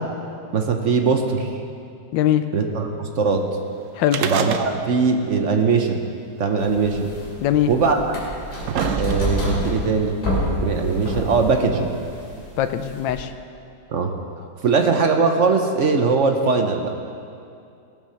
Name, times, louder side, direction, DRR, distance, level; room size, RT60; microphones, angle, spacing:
voice 1, 0.5-1.5 2.5-3.4 4.2-6.0 6.4-7.1 7.7-8.0 9.0-10.2 10.6-11.9 13.9-14.1 14.6-16.9, right 4 dB, 50° right, 4 dB, 1.0 m, -20 dB
voice 2, 2.1-2.4 3.9-4.2 7.4-7.7 12.6-13.3, left 11 dB, 80° left, 9 dB, 1.4 m, -20 dB
sound 1, 4.1-5.1 5.4-5.5 6.4-6.5 7.4-7.5 8.2-9.5 10.4-10.5, right 8 dB, 70° right, 0.7 m, -27 dB
sound 2, 6.6-13.2, equal, 55° left, 3.3 m, -28 dB
18.0 x 7.4 x 6.4 m, 2.4 s
omnidirectional pair, 2.0 m